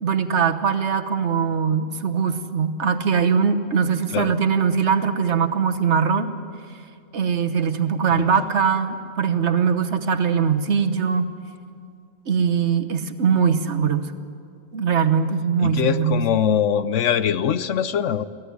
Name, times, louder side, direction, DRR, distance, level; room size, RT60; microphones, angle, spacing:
voice 1, 0.0-6.3 7.1-11.3 12.3-14.1 14.7-16.2, right 6 dB, 70° right, 8 dB, 1.4 m, -21 dB
voice 2, 8.1-8.4 15.6-18.3, left 8 dB, 80° left, 14 dB, 1.1 m, -22 dB
23.0 x 16.0 x 9.6 m, 2.3 s
omnidirectional pair, 1.2 m